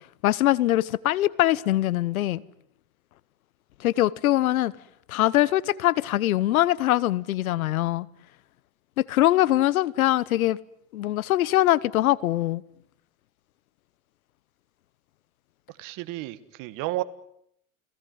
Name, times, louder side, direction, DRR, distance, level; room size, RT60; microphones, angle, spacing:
voice 1, 0.2-2.4 3.8-4.7 5.1-8.1 9.0-10.6 10.9-12.6, left 15 dB, 90° left, 1.0 m, -22 dB
voice 2, 15.8-17.0, right 18 dB, 50° right, 1.6 m, -32 dB
29.5 x 17.5 x 9.4 m
supercardioid pair, 120°, 41 cm